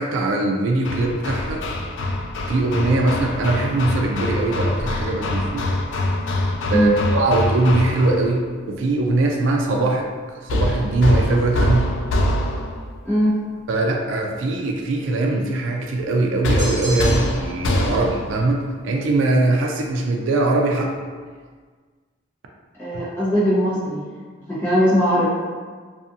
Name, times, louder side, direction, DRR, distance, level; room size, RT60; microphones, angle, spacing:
voice 1, 0.0-1.7 2.4-5.7 6.7-10.1 10.4-11.9 13.7-21.1 22.9-23.1, right 2 dB, 85° right, 1 dB, 0.4 m, -21 dB
Hammer, 0.8-8.3 10.5-12.9 16.4-18.4, left 1 dB, 75° left, 0.3 m, -24 dB
voice 2, 13.0-13.4 22.8-24.0 24.5-25.3, equal, 10° left, -11 dB, 0.9 m, -19 dB
sound 1, 16.6-17.6, equal, 40° right, 0.7 m, -32 dB
2.5 x 2.4 x 2.6 m, 1.5 s
head